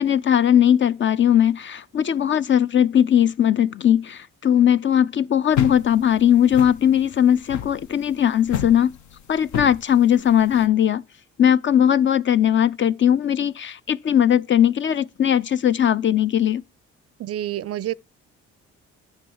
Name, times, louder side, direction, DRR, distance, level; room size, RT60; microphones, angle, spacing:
voice 1, 0.0-9.0 9.3-11.0 11.4-16.6, left 9 dB, 40° left, 0.5 m, -19 dB
sound 1, 5.5-10.6, left 10 dB, 70° left, 0.9 m, -31 dB
voice 2, 17.2-17.9, right 13 dB, 50° right, 0.4 m, -28 dB
10.5 x 6.2 x 7.2 m
cardioid pair, 90°, 30 cm